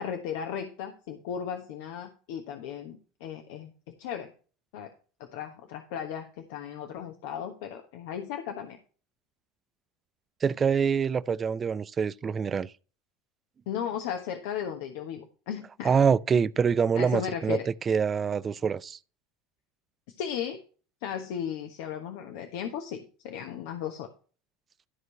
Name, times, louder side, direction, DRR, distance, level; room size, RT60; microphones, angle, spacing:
voice 1, 0.0-3.7 4.0-4.3 4.7-4.9 5.3-8.8 13.7-15.9 17.0-17.7 20.2-20.6 21.0-24.1, left 8 dB, 65° left, 1.2 m, -35 dB
voice 2, 10.4-12.7 15.8-17.6 17.9-19.0, right 6 dB, 30° right, 0.5 m, -25 dB
13.0 x 4.7 x 5.5 m
figure-of-eight pair, 75°, 0 cm